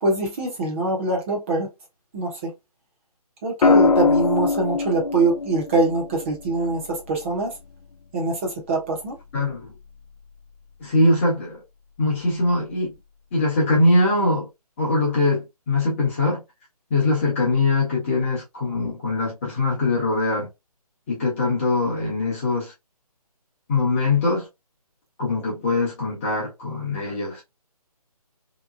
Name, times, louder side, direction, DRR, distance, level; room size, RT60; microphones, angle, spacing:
voice 1, 0.0-1.7 2.1-2.5 3.4-7.5 8.1-9.2, right 3 dB, 20° right, 1.0 m, -24 dB
sound 1, 3.6-7.7 9.4-9.8, left 4 dB, 75° left, 0.7 m, -22 dB
voice 2, 9.3-9.7 10.8-11.6 12.0-12.9 13.3-14.5 14.8-16.4 16.9-20.5 21.1-22.7 23.7-24.5 25.2-27.4, left 2 dB, 20° left, 1.0 m, -22 dB
3.3 x 3.0 x 2.4 m
hypercardioid pair, 165°, 20 cm